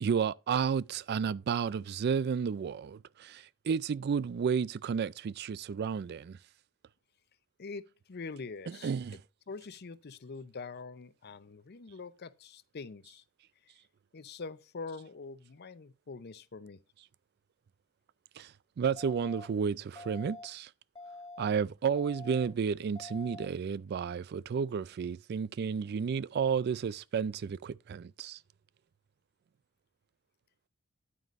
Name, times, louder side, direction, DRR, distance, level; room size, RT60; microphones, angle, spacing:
voice 1, 0.0-6.4 8.7-9.1 18.4-20.7 21.4-28.4, right 6 dB, 50° right, 0.3 m, -32 dB
voice 2, 7.6-8.9 9.5-13.2 13.6-13.7 14.1-16.8, left 4 dB, 50° left, 0.6 m, -44 dB
sound 1, 19.0-19.5 20.0-20.5 21.0-21.5 22.0-22.5 23.0-23.5, left 2 dB, 20° left, 2.3 m, -46 dB
10.0 x 9.1 x 2.5 m
head